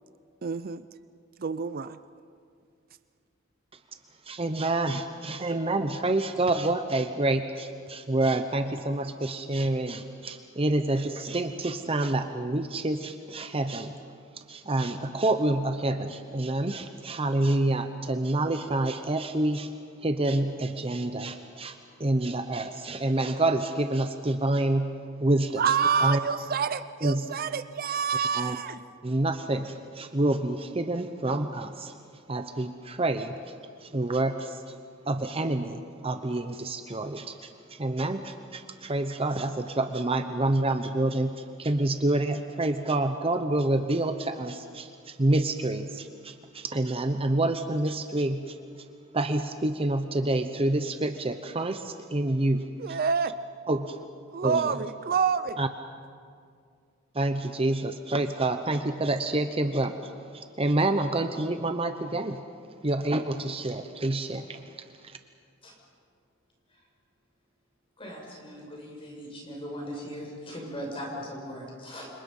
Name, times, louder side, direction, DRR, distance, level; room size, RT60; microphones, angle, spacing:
voice 1, 0.4-0.8 1.4-2.0 25.6-28.8 52.8-53.3 54.3-55.6, right 6 dB, 50° right, 13 dB, 0.5 m, -27 dB
voice 2, 4.2-13.9 14.5-19.7 20.0-24.9 25.2-25.6 26.0-26.2 27.0-27.3 28.3-28.6 29.0-31.9 32.3-33.4 33.8-34.6 35.1-48.6 49.1-53.0 53.7-54.0 54.4-54.8 55.6-55.7 57.1-62.4 62.8-64.6 65.0-65.2, right 2 dB, 30° right, 7 dB, 0.9 m, -28 dB
voice 3, 68.0-72.1, equal, 30° left, -1 dB, 6.8 m, -39 dB
29.5 x 26.5 x 5.5 m, 2.2 s
head